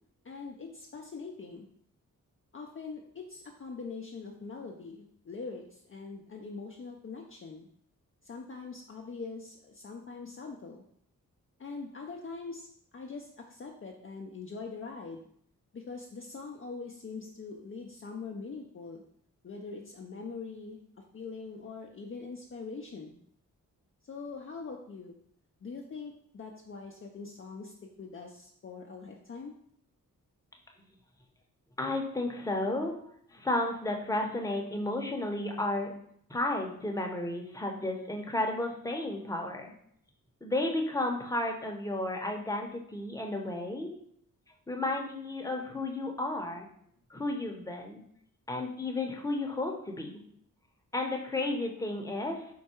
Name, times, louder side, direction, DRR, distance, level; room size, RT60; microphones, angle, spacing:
voice 1, 0.2-1.7 2.5-7.7 8.2-10.8 11.6-12.7 12.9-15.3 15.7-19.0 19.4-20.8 21.1-23.2 24.1-25.2 25.6-29.5, left 4 dB, 35° left, 1 dB, 0.5 m, -43 dB
voice 2, 31.8-32.9 33.3-35.9 36.3-39.7 40.4-43.9 44.7-46.7 47.1-48.0 48.5-50.1 50.9-52.6, left 2 dB, 10° left, 1 dB, 0.8 m, -32 dB
4.5 x 2.2 x 4.3 m, 0.67 s
cardioid pair, 50°, 35 cm